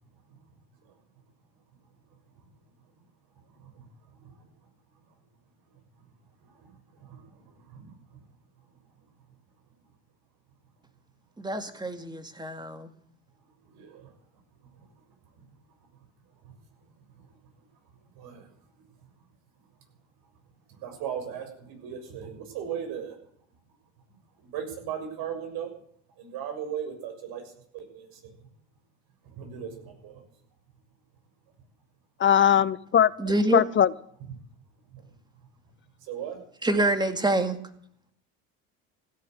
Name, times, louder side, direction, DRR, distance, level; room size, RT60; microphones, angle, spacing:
voice 1, 3.5-3.9 4.2-4.4 6.4-8.2 13.6-14.1 14.8-14.9 15.4-15.5 16.4-16.5 17.1-17.3 18.1-18.5 18.8-18.9 20.7-23.2 24.4-25.8 26.2-28.3 29.3-30.2 34.9-35.1 36.0-36.4, right 8 dB, 65° right, 6.6 m, -38 dB
voice 2, 11.4-12.9 33.2-33.6 36.6-37.6, right 2 dB, 10° right, 2.3 m, -26 dB
voice 3, 32.2-33.9, left 9 dB, 30° left, 0.7 m, -21 dB
16.5 x 11.0 x 8.1 m
supercardioid pair, 95°, 38 cm